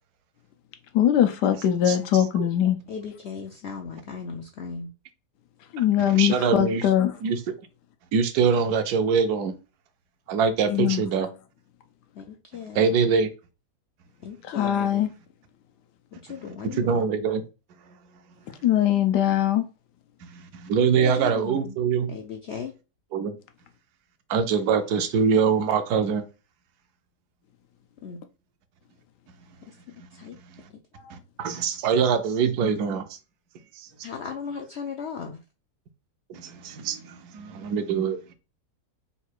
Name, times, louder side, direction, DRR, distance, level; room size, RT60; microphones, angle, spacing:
voice 1, 0.9-2.8 5.7-7.1 10.7-11.0 14.5-15.1 18.6-19.6, left 10 dB, 90° left, 1.3 m, -21 dB
voice 2, 1.9-2.2 6.1-6.9 7.2-7.4 8.1-9.5 10.3-11.3 12.7-13.3 16.7-17.4 20.2-22.1 23.1-23.4 24.3-26.2 30.5-30.6 31.1-33.1 33.8-33.9 36.3-38.3, right 6 dB, 75° right, 1.1 m, -24 dB
voice 3, 2.9-4.9 12.2-12.9 14.2-15.0 16.3-17.0 20.9-21.8 22.1-22.7 28.0-28.2 29.9-30.4 34.0-35.4, left 6 dB, 75° left, 0.6 m, -36 dB
4.0 x 2.4 x 4.4 m
omnidirectional pair, 1.7 m